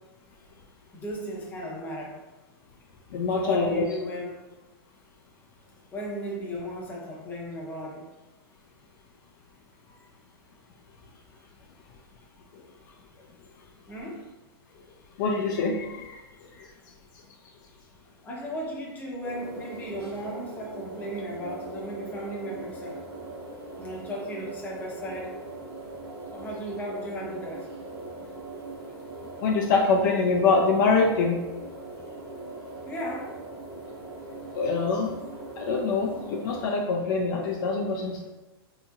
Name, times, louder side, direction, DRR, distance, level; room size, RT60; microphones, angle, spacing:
voice 1, 0.9-2.2 3.3-4.4 5.9-8.0 13.9-14.2 18.2-23.0 23.8-25.3 26.3-27.7 32.9-33.3, equal, 15° left, -3 dB, 0.6 m, -35 dB
voice 2, 3.1-3.8 15.2-16.2 29.4-31.4 34.6-35.1 35.6-38.3, left 4 dB, 50° left, 0 dB, 0.4 m, -24 dB
sound 1, 19.2-36.6, right 2 dB, 90° right, 0.9 m, -41 dB
2.8 x 2.7 x 2.3 m, 1.1 s
hypercardioid pair, 140°, 13 cm